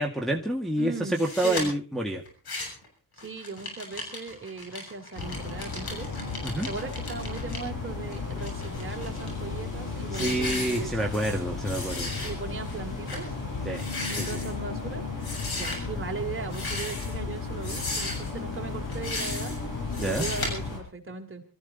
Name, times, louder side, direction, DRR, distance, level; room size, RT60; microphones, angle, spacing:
voice 1, 0.0-2.2 6.4-6.7 10.1-12.1 13.7-13.8 14.2-14.4 20.0-20.2, right 1 dB, ahead, -2 dB, 1.9 m, -28 dB
voice 2, 0.8-1.7 3.2-6.1 6.6-10.9 12.2-13.3 14.1-15.0 15.6-19.5 20.0-21.4, right 4 dB, 35° right, 2 dB, 3.4 m, -38 dB
sound 1, 1.1-1.6 2.3-2.9 3.2-7.6 8.1-9.3 9.7-9.9 10.1-11.4 11.6-12.3 12.7-12.8 13.1-13.2 13.7-14.5 15.2-15.8 16.5-17.2 17.6-18.3 18.9-19.6 19.9-20.5, left 2 dB, 85° left, 7.1 m, -36 dB
sound 2, 5.2-20.8, left 4 dB, 55° left, 6.6 m, -34 dB
23.5 x 14.5 x 4.1 m, 0.38 s
wide cardioid pair, 105°, 37 cm